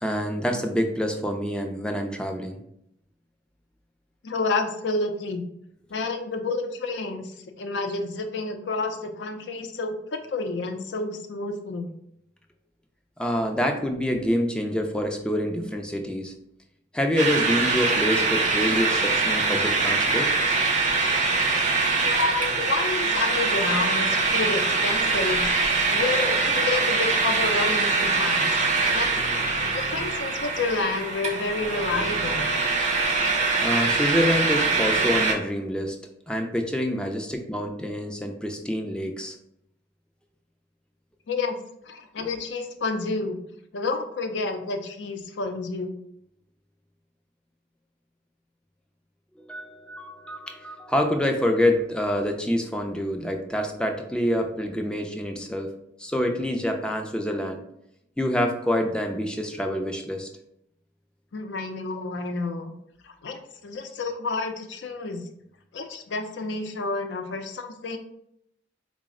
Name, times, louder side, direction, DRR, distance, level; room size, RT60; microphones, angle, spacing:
voice 1, 0.0-2.6 13.2-16.3 16.9-20.3 33.6-36.0 36.3-39.4 42.2-42.3 49.4-55.7 56.0-57.6 58.2-60.3, equal, 5° left, 4 dB, 0.4 m, -26 dB
voice 2, 4.2-5.4 5.9-11.9 22.0-25.5 25.9-29.2 29.7-32.5 41.3-41.6 41.9-43.4 43.7-46.0 61.3-62.7 63.0-65.2 65.7-68.0, left 3 dB, 80° left, 6 dB, 0.5 m, -29 dB
sound 1, 17.2-35.3, right 3 dB, 40° right, 0.6 m, -23 dB
4.0 x 2.0 x 3.6 m, 0.76 s
head